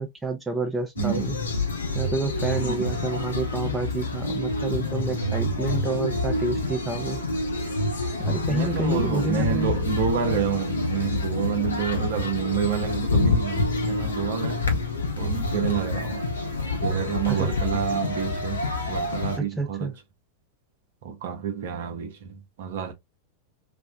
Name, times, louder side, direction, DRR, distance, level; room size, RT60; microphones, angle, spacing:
voice 1, 0.0-1.4 1.9-7.2 8.2-9.8 17.3-17.5 19.4-19.9, right 2 dB, 10° right, 0.5 m, -29 dB
sound 1, 1.0-19.4, left 2 dB, 75° left, 0.6 m, -27 dB
voice 2, 2.6-2.9 8.5-14.6 15.2-16.2 16.8-19.9 21.0-22.9, right 9 dB, 55° right, 0.7 m, -29 dB
3.3 x 2.1 x 2.3 m
figure-of-eight pair, 90°, 0 cm